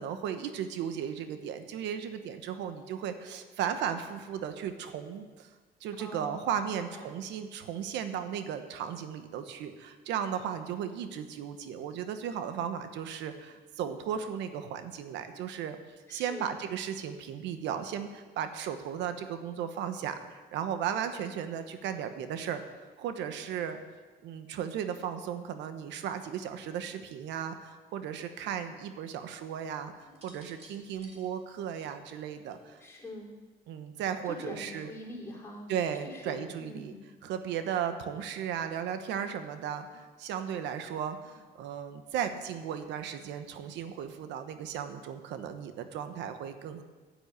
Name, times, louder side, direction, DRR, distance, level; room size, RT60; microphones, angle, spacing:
voice 1, 0.0-5.5 5.8-15.8 16.1-22.6 23.0-23.8 24.2-32.8 33.7-34.9 35.7-36.9 37.2-46.8, right 8 dB, 90° right, 8 dB, 1.0 m, -35 dB
voice 2, 6.0-6.4 6.7-7.0 16.1-16.5 32.8-33.3 34.2-35.7 36.0-37.1, left 1 dB, 15° left, -5 dB, 4.5 m, -44 dB
sound 1, 30.1-33.2 34.3-34.7, right 2 dB, 35° right, 3.1 m, -57 dB
10.5 x 9.5 x 8.1 m, 1.3 s
cardioid pair, 105°, 18 cm